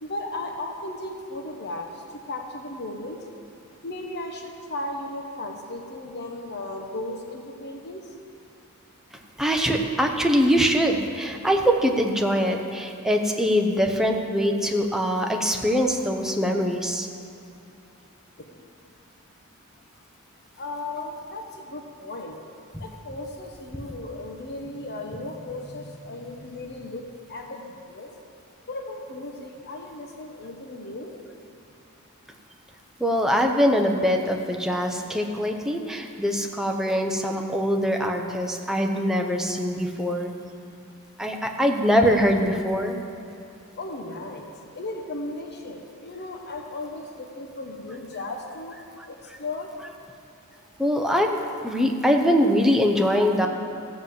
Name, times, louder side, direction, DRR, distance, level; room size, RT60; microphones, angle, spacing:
voice 1, 0.0-1.9 2.3-3.2 3.8-8.0 18.4-18.5 20.6-22.4 22.8-27.0 27.3-27.6 27.9-28.1 28.7-31.1 43.8-44.5 44.7-48.8 49.4-49.7, left 2 dB, 50° left, 2 dB, 1.1 m, -35 dB
voice 2, 9.4-17.1 22.7-22.8 33.0-40.3 41.2-43.0 50.8-53.5, equal, ahead, 2 dB, 0.8 m, -23 dB
15.0 x 5.5 x 7.6 m, 2.6 s
head